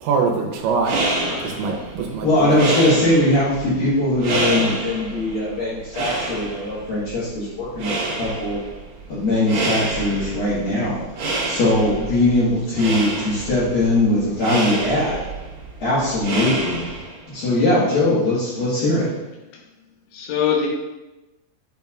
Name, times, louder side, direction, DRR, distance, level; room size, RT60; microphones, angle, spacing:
voice 1, 0.0-1.0 1.4-2.6, right 5 dB, 85° right, 0 dB, 3.0 m, -23 dB
sound 1, 0.6-17.3, right 2 dB, 65° right, 1.7 m, -28 dB
voice 2, 1.2-1.6 20.1-20.7, left 7 dB, 85° left, 0 dB, 3.3 m, -23 dB
voice 3, 2.2-7.9 8.2-8.6 9.1-11.0 11.5-15.2 15.8-16.9 17.3-19.1, left 1 dB, 65° left, -10 dB, 2.9 m, -20 dB
8.5 x 5.3 x 2.4 m, 1.0 s
omnidirectional pair, 5.1 m